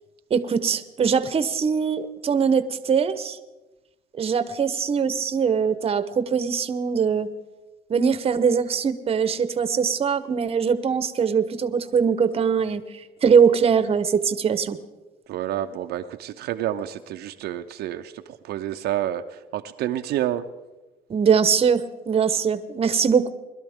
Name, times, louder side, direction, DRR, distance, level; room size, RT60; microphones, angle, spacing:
voice 1, 0.3-3.4 4.2-7.3 7.9-12.8 13.2-14.8 21.1-23.3, right 6 dB, 35° right, 12 dB, 0.9 m, -22 dB
voice 2, 15.3-20.4, right 12 dB, 75° right, 6 dB, 0.6 m, -29 dB
21.0 x 12.0 x 3.6 m, 1.1 s
cardioid pair, 110°, 17 cm